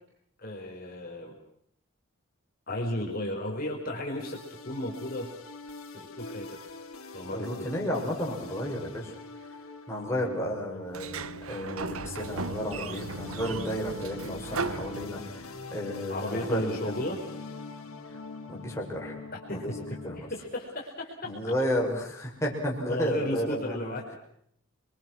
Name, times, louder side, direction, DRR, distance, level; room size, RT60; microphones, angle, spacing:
voice 1, 0.4-1.3 2.7-4.4 4.6-5.3 5.9-6.6 7.1-7.7 16.1-17.2 19.5-19.6 20.2-21.3 22.9-24.0, left 1 dB, 45° left, -1 dB, 4.6 m, -34 dB
sound 1, 4.2-20.2, left 3 dB, 85° left, 3.7 m, -44 dB
voice 2, 7.3-9.1 9.9-11.1 11.5-17.0 18.5-19.2 19.5-20.3 21.2-23.9, equal, 15° left, -3 dB, 6.4 m, -32 dB
Sliding door, 10.9-15.6, right 4 dB, 85° right, 1.1 m, -37 dB
29.5 x 23.5 x 6.3 m, 0.70 s
head